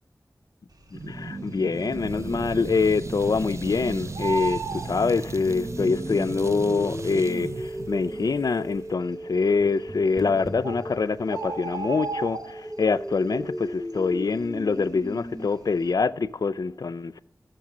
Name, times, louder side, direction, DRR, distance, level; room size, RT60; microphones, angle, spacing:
voice 1, 0.9-17.2, left 4 dB, 65° left, 0.4 m, -25 dB
sound 1, 0.9-8.9, right 3 dB, 45° right, 0.5 m, -36 dB
Bird, 1.2-1.8 2.2-2.3 2.5-3.7 4.0-5.8 6.7-6.8 7.4-7.5 7.7-7.8 8.4-8.9 9.9-10.0 10.3-10.4 10.6-12.9 13.3-13.6 13.9-15.3 15.6-15.9, right 4 dB, 65° right, 1.6 m, -34 dB
sound 2, 5.5-15.5, equal, ahead, 0.6 m, -36 dB
13.0 x 6.5 x 7.4 m
wide cardioid pair, 50°, 7 cm